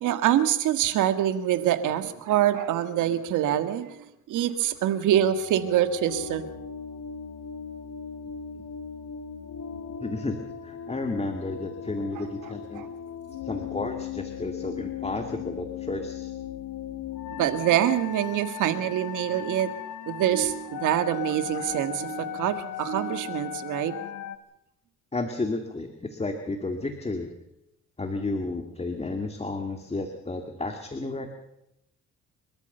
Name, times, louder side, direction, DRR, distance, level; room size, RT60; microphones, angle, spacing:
voice 1, 0.0-6.5 12.7-12.9 17.3-19.7 20.1-23.9, right 11 dB, 85° right, 10 dB, 1.8 m, -25 dB
sound 1, 5.1-24.4, left 10 dB, 75° left, 1.6 m, -38 dB
voice 2, 10.0-10.4 10.6-12.9 13.4-16.3 25.1-27.3 28.0-31.3, left 2 dB, 20° left, 5 dB, 2.2 m, -32 dB
29.5 x 13.5 x 6.8 m, 0.84 s
cardioid pair, 90°, 30 cm